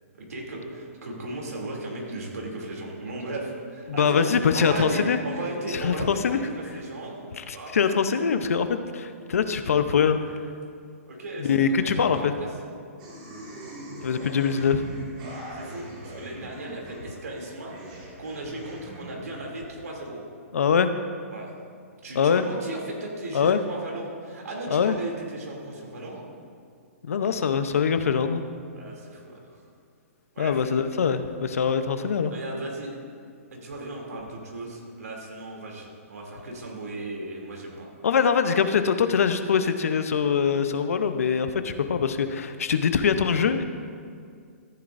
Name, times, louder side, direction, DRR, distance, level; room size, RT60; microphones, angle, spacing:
voice 1, 0.1-7.3 7.5-7.7 11.1-12.5 15.5-17.7 18.2-20.2 21.3-21.5 22.0-26.2 28.7-29.6 30.3-30.6 32.3-32.9 33.5-37.9, right 2 dB, 85° right, -1 dB, 2.8 m, -36 dB
voice 2, 3.9-5.2 5.7-6.4 7.4-10.2 11.4-12.3 14.0-14.8 20.5-20.9 22.1-22.5 23.3-23.6 24.7-25.0 27.1-28.4 30.4-32.3 38.0-43.6, left 6 dB, 70° left, 9 dB, 0.7 m, -23 dB
sound 1, 13.0-19.1, right 1 dB, 30° right, 2.1 m, -41 dB
14.5 x 10.0 x 2.6 m, 2.2 s
hypercardioid pair, 175°, 8 cm